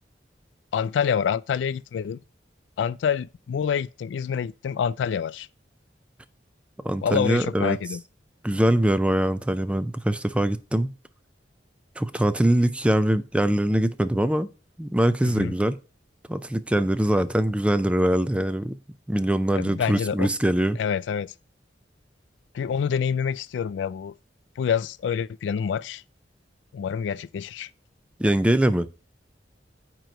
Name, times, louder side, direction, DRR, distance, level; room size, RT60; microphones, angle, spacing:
voice 1, 0.7-2.2 2.8-5.5 7.0-8.0 15.2-15.5 19.5-20.3 20.8-21.3 22.5-24.1 24.6-26.0 26.7-27.7, left 7 dB, 85° left, 0.3 m, -27 dB
voice 2, 6.8-7.8 8.4-10.9 12.0-14.5 14.8-15.8 16.3-18.8 19.1-20.8 28.2-28.9, right 1 dB, 5° right, 0.4 m, -23 dB
9.1 x 3.0 x 5.2 m
head